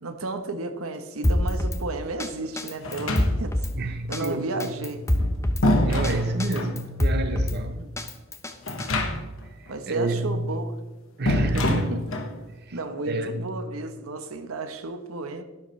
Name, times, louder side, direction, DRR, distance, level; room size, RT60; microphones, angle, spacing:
voice 1, 0.0-3.6 4.1-5.1 7.7-8.0 9.7-10.7 11.2-11.5 11.9-12.0 12.7-15.4, right 2 dB, 85° right, 1.0 m, -33 dB
Drum kit, 1.2-1.8 2.2-2.3 2.6-3.7 4.1-4.3 4.6-5.6 6.0-6.1 6.4-7.6 8.0-8.9, left 1 dB, 15° left, 0.7 m, -25 dB
sound 1, 2.8-3.7 5.0-6.8 8.6-9.5 9.7-9.8 11.3-12.4, left 1 dB, 70° left, 1.4 m, -25 dB
voice 2, 3.8-4.7 5.8-7.8 9.9-10.5 11.2-11.9 12.6-12.8 13.0-13.5, right 2 dB, 50° right, 0.7 m, -29 dB
13.0 x 11.5 x 3.2 m
head